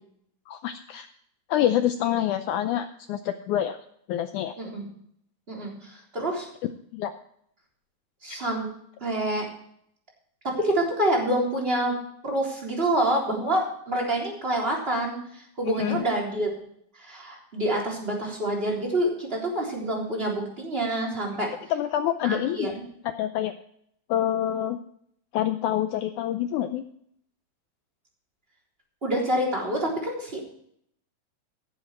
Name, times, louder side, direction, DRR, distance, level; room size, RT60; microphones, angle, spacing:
voice 1, 0.5-1.1 1.5-3.8 4.1-4.5 6.9-7.1 8.3-8.4 15.8-16.0 21.7-22.7 23.0-23.5 24.1-24.8 25.3-26.8, left 11 dB, 80° left, 9 dB, 1.8 m, -26 dB
voice 2, 5.5-6.5 8.2-8.7 9.0-9.4 10.4-11.9 12.2-16.5 17.0-21.5 22.2-22.8 29.0-30.4, right 1 dB, 15° right, -2 dB, 3.5 m, -27 dB
16.5 x 8.0 x 4.5 m, 0.69 s
omnidirectional pair, 4.2 m